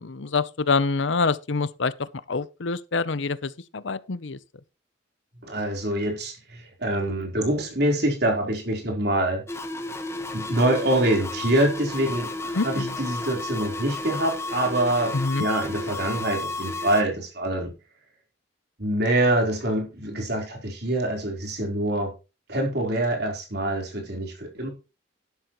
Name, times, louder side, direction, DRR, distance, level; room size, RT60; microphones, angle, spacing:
voice 1, 0.0-4.4 12.5-12.9 15.1-15.5, left 4 dB, 70° left, 0.7 m, -26 dB
voice 2, 5.4-9.4 10.3-17.7 18.8-22.1 22.5-24.7, right 1 dB, 55° right, 4.0 m, -25 dB
sound 1, 9.5-17.0, left 2 dB, 15° left, 1.3 m, -32 dB
12.0 x 11.5 x 3.1 m
head